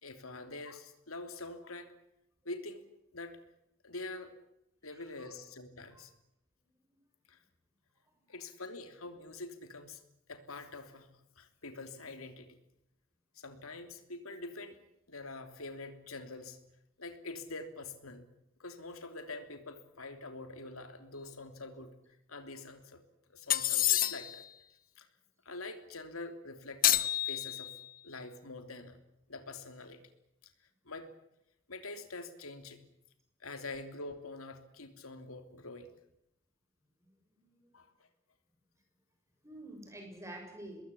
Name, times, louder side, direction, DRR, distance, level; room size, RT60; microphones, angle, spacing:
voice 1, 0.0-1.9 2.4-2.8 3.1-3.4 3.8-4.3 4.8-6.1 7.3-7.4 8.3-10.0 10.3-12.6 13.3-14.8 15.1-16.6 17.0-18.2 18.6-22.0 22.3-23.0 23.3-24.4 25.0-25.1 25.4-27.8 28.0-29.0 29.3-30.0 30.8-31.1 31.7-32.8 33.4-36.0 37.7-37.9, left 2 dB, 90° left, 8 dB, 3.2 m, -45 dB
voice 2, 4.9-5.3 5.9-6.0 6.9-7.0 37.3-37.7 39.4-40.8, right 1 dB, 15° right, 3 dB, 6.8 m, -49 dB
sound 1, 23.5-24.4 26.8-27.9, left 13 dB, 40° left, 1.1 m, -29 dB
24.5 x 21.5 x 8.5 m, 0.83 s
head